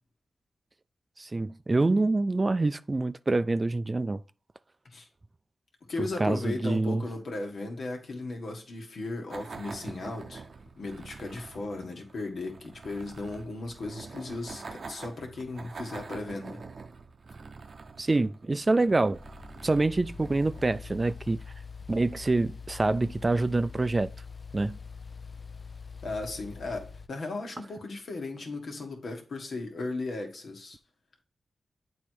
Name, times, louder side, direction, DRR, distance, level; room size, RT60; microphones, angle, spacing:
voice 1, 1.2-4.2 6.0-7.0 18.0-19.2 19.6-21.4 21.9-24.1 24.5-24.8, right 2 dB, 35° right, 0.4 m, -26 dB
voice 2, 5.9-10.4 10.7-16.6 26.0-30.8, left 2 dB, 75° left, 1.5 m, -36 dB
sound 1, 9.3-21.5, right 4 dB, 65° right, 0.7 m, -46 dB
sound 2, 17.3-27.1, left 5 dB, 45° left, 0.4 m, -44 dB
8.2 x 3.2 x 4.6 m
cardioid pair, 50°, 0 cm